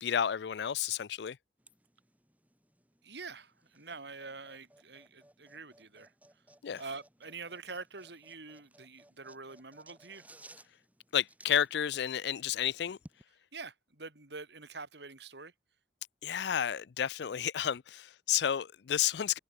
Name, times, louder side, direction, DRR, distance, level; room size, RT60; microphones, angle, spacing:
voice 1, 0.0-1.4 6.6-6.8 11.1-13.0 16.2-19.4, left 9 dB, 65° left, 0.4 m, -31 dB
sound 1, 1.6-13.2, right 1 dB, 10° right, 4.6 m, -61 dB
voice 2, 3.0-6.1 6.8-10.2 13.5-15.5, right 4 dB, 70° right, 3.3 m, -46 dB
head